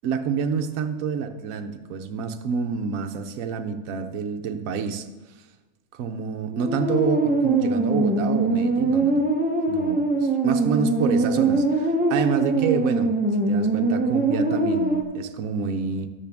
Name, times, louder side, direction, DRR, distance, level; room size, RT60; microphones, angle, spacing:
voice 1, 0.0-5.1 5.9-9.3 9.7-13.1 13.5-16.1, right 6 dB, 65° right, 7 dB, 1.1 m, -28 dB
sound 1, 6.5-15.0, right 2 dB, 10° right, 0.5 m, -22 dB
12.0 x 8.3 x 3.5 m, 1.2 s
omnidirectional pair, 1.6 m